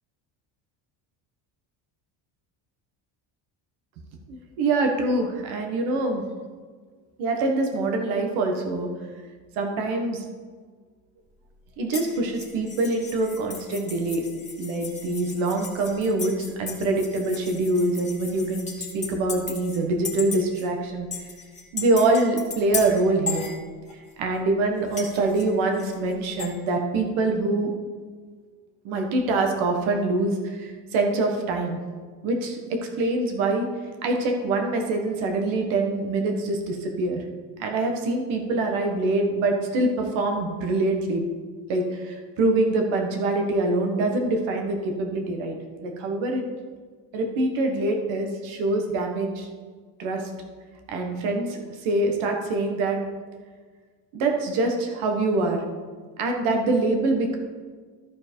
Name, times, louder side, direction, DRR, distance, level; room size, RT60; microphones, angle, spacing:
voice 1, 4.3-6.2 7.2-8.9 9.5-10.2 11.8-14.2 14.6-18.7 18.9-21.1 21.7-23.5 24.2-27.7 28.8-31.8 32.2-33.7 34.0-37.2 37.6-41.2 41.7-45.6 45.8-46.5 47.1-49.5 50.0-50.3 50.9-53.0 54.1-55.6 56.2-57.4, right 2 dB, 75° right, 3 dB, 1.6 m, -24 dB
sound 1, 11.9-19.8 20.0-20.7 21.1-24.1 24.9-26.5, left 4 dB, 15° left, 1.9 m, -36 dB
14.0 x 4.7 x 4.6 m, 1.5 s
cardioid pair, 115°, 48 cm